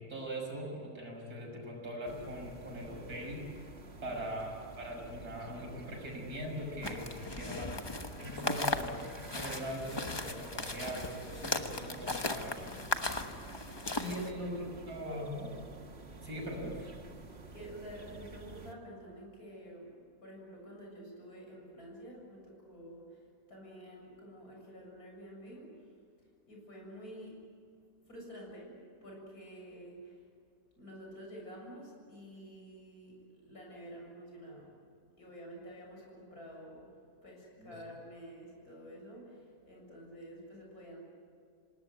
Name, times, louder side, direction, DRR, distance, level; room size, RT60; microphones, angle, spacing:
voice 1, 0.0-3.5 4.0-7.7 8.2-9.0 9.3-12.7 13.9-15.5 16.2-16.9 37.6-37.7, equal, 80° right, 0 dB, 6.7 m, -41 dB
sound 1, 2.0-18.7, right 3 dB, 45° right, 1.9 m, -50 dB
voice 2, 3.9-4.3 12.2-13.3 13.7-14.7 17.3-27.4 28.1-30.2 30.8-34.7 35.2-36.9 37.2-41.0, equal, 75° left, -1 dB, 7.9 m, -50 dB
sound 2, 6.8-14.3, left 2 dB, 20° left, 1.0 m, -37 dB
27.5 x 18.5 x 9.5 m, 2.3 s
omnidirectional pair, 1.6 m